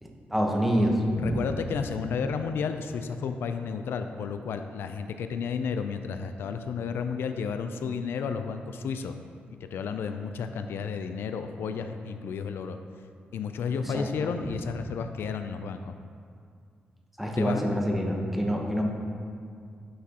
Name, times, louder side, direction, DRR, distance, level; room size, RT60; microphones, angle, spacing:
voice 1, 0.0-1.4 13.9-14.1 14.4-14.5 17.2-18.8, equal, 5° right, 0 dB, 1.0 m, -26 dB
voice 2, 1.2-9.2 9.7-12.8 13.3-15.9 17.4-17.6, left 6 dB, 85° left, 8 dB, 0.4 m, -32 dB
9.4 x 6.0 x 2.9 m, 2.3 s
cardioid pair, 105°, 4 cm